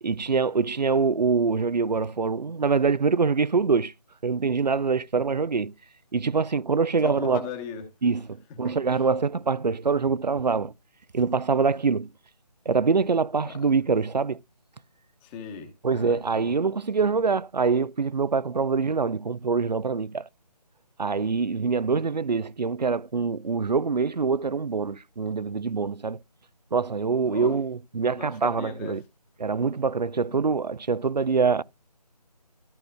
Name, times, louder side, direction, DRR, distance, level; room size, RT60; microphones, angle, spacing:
voice 1, 0.0-3.9 4.2-5.7 6.1-7.4 8.0-8.2 8.6-10.7 11.1-12.1 12.7-14.4 15.8-20.3 21.0-26.2 26.7-29.0 29.4-31.6, right 5 dB, 90° right, 0.5 m, -24 dB
voice 2, 7.0-7.9 8.6-9.1 13.4-13.6 15.2-16.5 27.2-27.6 28.2-29.0 30.3-30.4, left 7 dB, 10° left, 1.0 m, -39 dB
13.5 x 6.3 x 2.3 m
figure-of-eight pair, 160°, 21 cm